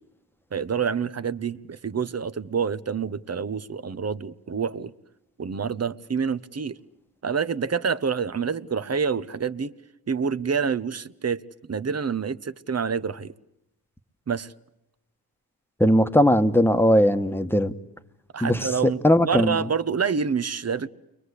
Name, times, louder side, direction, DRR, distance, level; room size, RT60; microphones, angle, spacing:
voice 1, 0.5-4.9 5.4-6.8 7.2-9.7 10.1-11.4 11.7-13.3 14.3-14.5 18.3-19.0 19.3-20.9, right 6 dB, 35° right, 1.2 m, -27 dB
voice 2, 15.8-17.7 18.4-18.7 19.0-19.7, equal, 5° left, 1.6 m, -19 dB
29.5 x 23.0 x 8.4 m
cardioid pair, 65°, 42 cm